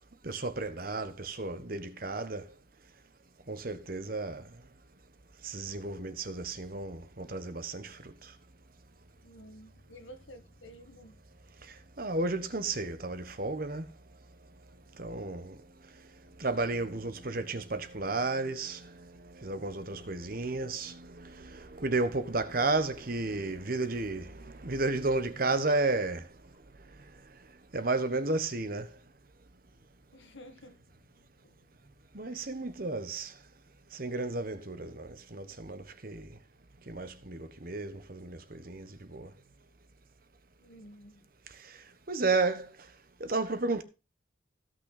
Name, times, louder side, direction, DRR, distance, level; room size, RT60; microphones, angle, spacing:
voice 1, 0.2-2.5 3.5-4.5 5.4-8.3 11.6-13.9 15.0-15.6 16.4-26.3 27.7-28.9 32.1-33.3 33.9-36.3 36.9-39.3 41.6-41.8 42.1-42.7 43.2-43.8, right 3 dB, 45° right, 1.2 m, -33 dB
voice 2, 9.2-11.2 21.4-21.5 30.1-30.9 31.2-31.6 32.2-32.7 40.6-41.3, equal, 75° left, 1.7 m, -52 dB
16.5 x 6.1 x 4.1 m
head